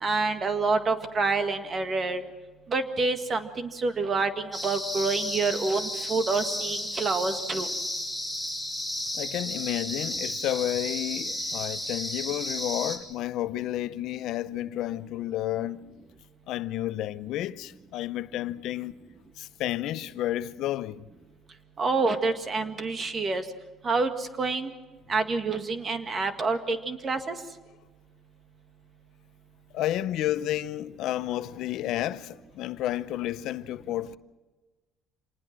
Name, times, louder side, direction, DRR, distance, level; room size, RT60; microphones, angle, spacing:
voice 1, 0.0-2.2 2.7-7.7 21.8-23.4 23.8-24.7 25.1-27.3, right 3 dB, 30° right, 1.8 m, -27 dB
sound 1, 4.5-13.0, left 1 dB, 5° right, 3.8 m, -33 dB
voice 2, 9.1-15.8 16.5-18.9 19.4-21.0 29.7-34.2, left 13 dB, 65° left, 0.6 m, -31 dB
27.0 x 19.5 x 6.1 m
cardioid pair, 135°, 0 cm